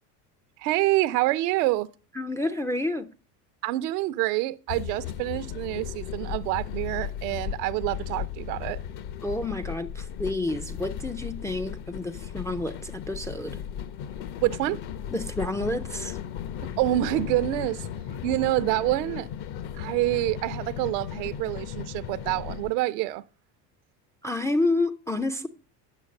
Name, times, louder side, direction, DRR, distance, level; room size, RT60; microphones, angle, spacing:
voice 1, 0.6-1.9 3.6-8.8 14.4-14.8 16.8-17.9 18.2-19.3 19.8-23.2, right 17 dB, 75° right, 0.7 m, -27 dB
voice 2, 2.2-3.1 9.2-13.6 15.1-16.2 24.2-25.5, left 2 dB, 5° left, 0.4 m, -29 dB
sound 1, 4.7-22.7, left 9 dB, 55° left, 0.9 m, -36 dB
9.3 x 6.4 x 5.1 m
hypercardioid pair, 85°, 49 cm